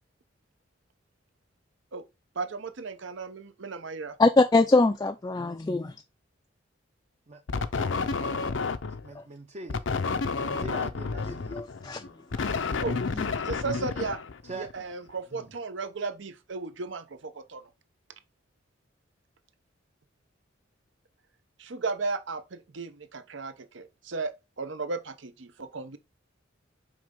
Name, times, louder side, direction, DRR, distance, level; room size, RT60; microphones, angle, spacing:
voice 1, 2.3-4.2 12.8-13.0 13.4-14.2 14.5-17.6 21.6-24.3 24.6-26.0, right 4 dB, 75° right, 0.8 m, -35 dB
voice 2, 4.2-5.9 9.2-9.3 11.5-12.1 12.4-12.6 13.2-13.3, left 2 dB, 20° left, 0.4 m, -23 dB
voice 3, 7.3-8.6 9.0-9.8 10.4-11.6 14.4-14.7 15.3-15.5, right 2 dB, 35° right, 0.7 m, -43 dB
sound 1, 7.5-9.1 9.7-14.8, left 4 dB, 75° left, 0.6 m, -30 dB
6.0 x 4.9 x 3.7 m
head